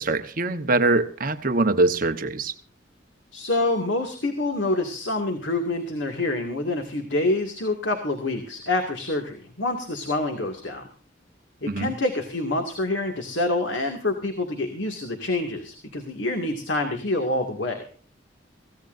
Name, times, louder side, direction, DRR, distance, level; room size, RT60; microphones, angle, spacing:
voice 1, 0.0-2.5 11.7-11.9, right 2 dB, 50° right, 8 dB, 1.1 m, -23 dB
voice 2, 3.3-10.8 11.6-17.8, left 2 dB, 85° left, 4 dB, 2.2 m, -27 dB
23.0 x 16.5 x 2.6 m, 0.40 s
head